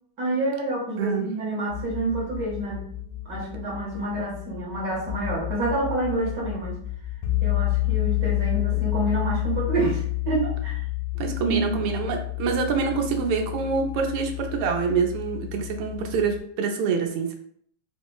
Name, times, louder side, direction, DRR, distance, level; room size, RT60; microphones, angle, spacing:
voice 1, 0.2-2.9 3.2-6.8 7.4-10.8 11.4-11.8, right 2 dB, 55° right, -3 dB, 1.1 m, -28 dB
sound 1, 1.7-16.4, left 18 dB, 75° left, 1.4 m, -30 dB
voice 2, 11.2-17.4, right 5 dB, 85° right, 2 dB, 1.5 m, -26 dB
4.9 x 2.0 x 2.2 m, 0.65 s
omnidirectional pair, 2.4 m